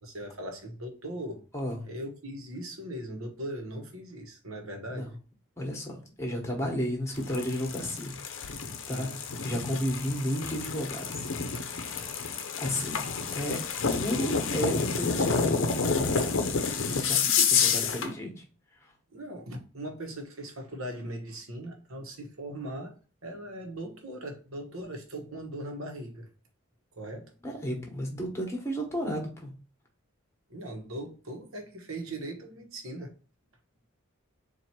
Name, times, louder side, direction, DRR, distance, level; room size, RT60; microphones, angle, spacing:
voice 1, 0.0-1.4 1.8-5.2 8.9-9.2 19.1-22.9 23.2-26.3 26.9-27.3 30.5-33.1, right 1 dB, 80° right, 1.1 m, -39 dB
voice 2, 5.6-8.1 8.9-9.1 9.4-11.3 12.6-13.1 13.3-13.6 14.0-18.4 27.4-29.5, equal, 15° left, 1.1 m, -33 dB
sound 1, 7.1-18.1, left 5 dB, 65° left, 0.6 m, -29 dB
4.3 x 2.6 x 4.4 m
head